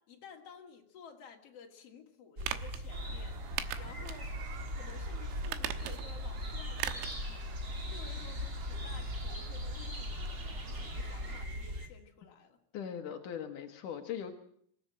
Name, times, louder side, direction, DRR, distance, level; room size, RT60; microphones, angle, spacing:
voice 1, 0.0-4.3 4.7-12.6, left 6 dB, 40° left, 2 dB, 2.4 m, -54 dB
sound 1, 2.4-11.9, left 1 dB, 40° right, 1.1 m, -39 dB
sound 2, 2.4-2.8 3.6-4.2 4.6-4.7 5.4-6.2 6.8-7.2 7.5-7.6, right 12 dB, 90° right, 3.9 m, -38 dB
sound 3, 2.9-11.5, right 7 dB, 60° right, 3.1 m, -52 dB
voice 2, 12.7-14.3, left 8 dB, 80° left, 4 dB, 1.8 m, -40 dB
25.5 x 16.5 x 7.7 m, 0.66 s
omnidirectional pair, 6.0 m